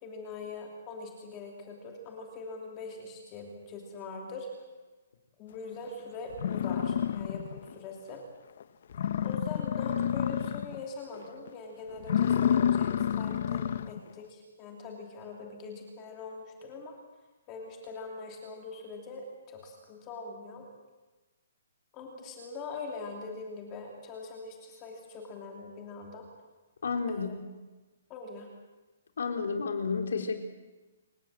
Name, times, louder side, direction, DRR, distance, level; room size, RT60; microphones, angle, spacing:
voice 1, 0.0-4.6 5.4-8.2 9.2-17.0 17.5-20.7 21.9-26.3 27.1-27.3 28.1-28.5, left 3 dB, 15° left, 1 dB, 2.9 m, -42 dB
sound 1, 5.9-6.0 6.3-7.7 8.1-8.2 8.6-8.7 8.9-10.8 11.2-11.5 12.0-14.0, left 9 dB, 40° left, 0.8 m, -29 dB
voice 2, 26.8-27.3 29.2-30.3, left 5 dB, 65° left, 5 dB, 3.9 m, -31 dB
28.0 x 17.0 x 7.6 m, 1.2 s
hypercardioid pair, 180°, 0 cm